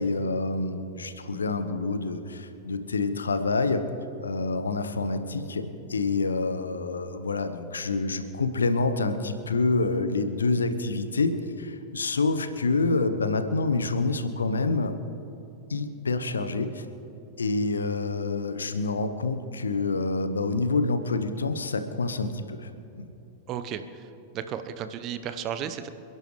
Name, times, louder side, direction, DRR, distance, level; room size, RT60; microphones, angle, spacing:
voice 1, 0.0-3.8 4.2-14.9 15.7-16.8 17.4-22.7 22.9-23.0, left 3 dB, 75° left, 10 dB, 1.0 m, -27 dB
voice 2, 23.5-25.9, right 8 dB, 35° right, 10 dB, 0.9 m, -34 dB
28.0 x 11.0 x 3.2 m, 2.8 s
figure-of-eight pair, 90°, 0 cm